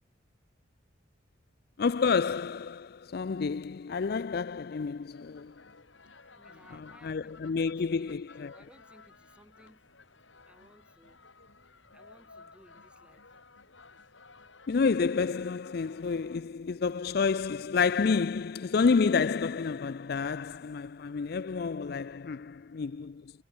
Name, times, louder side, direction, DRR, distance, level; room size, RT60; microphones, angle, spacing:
voice 1, 1.8-5.5 6.7-8.5 14.7-23.2, left 5 dB, 55° left, 0.4 m, -29 dB
sound 1, 5.1-16.4, left 4 dB, 80° left, 4.6 m, -56 dB
voice 2, 6.2-9.9 10.5-11.2 11.9-13.3, equal, 5° right, 3.7 m, -60 dB
head